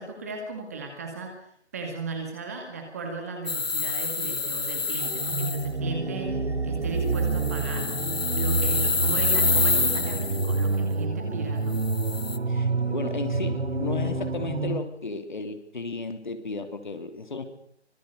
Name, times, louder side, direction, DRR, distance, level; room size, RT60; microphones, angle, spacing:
voice 1, 0.0-1.4 1.7-6.4 6.6-7.9 8.4-11.8, right 3 dB, 15° right, 4 dB, 2.2 m, -36 dB
sound 1, 3.5-5.7 7.2-10.7 11.7-12.4, left 4 dB, 60° left, 1.3 m, -27 dB
sound 2, 5.0-14.8, right 3 dB, 70° right, 2.3 m, -28 dB
voice 2, 12.5-17.4, left 3 dB, 45° left, 7 dB, 3.4 m, -34 dB
25.0 x 22.0 x 6.8 m, 0.69 s
figure-of-eight pair, 170°, 34 cm